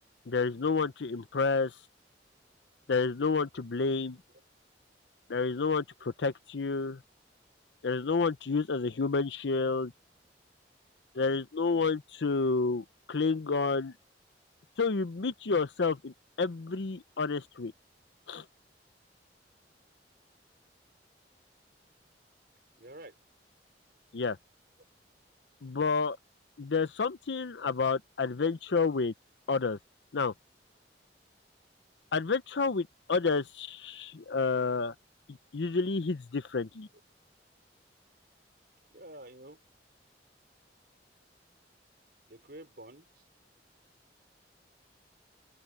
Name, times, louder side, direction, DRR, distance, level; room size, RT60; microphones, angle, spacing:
voice 1, 0.3-1.7 2.9-4.2 5.3-7.0 7.8-9.9 11.1-13.9 14.8-17.7 18.3-18.4 24.1-24.4 25.6-26.2 26.6-29.1 29.5-29.8 30.1-30.3 32.1-34.9 35.5-36.9, left 4 dB, 80° left, 0.7 m, -29 dB
voice 2, 22.8-23.2 38.9-39.6 42.3-43.2, right 1 dB, 60° right, 5.5 m, -49 dB
open air
head